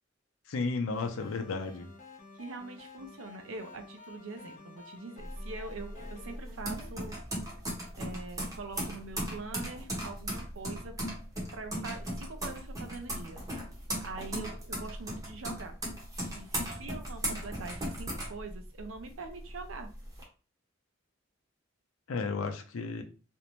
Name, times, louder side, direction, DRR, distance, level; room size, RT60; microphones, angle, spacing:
voice 1, 0.5-1.9 22.1-23.0, left 4 dB, 85° left, 6 dB, 0.5 m, -33 dB
sound 1, 0.9-6.4, left 4 dB, 40° left, 0.7 m, -52 dB
voice 2, 2.3-7.1 8.0-10.9 11.5-13.4 14.0-15.8 16.3-19.9, right 3 dB, 80° right, 6 dB, 0.5 m, -43 dB
sound 2, 5.2-19.0 19.4-20.2, right 1 dB, 15° right, 0.7 m, -37 dB
2.5 x 2.1 x 3.0 m, 0.34 s
head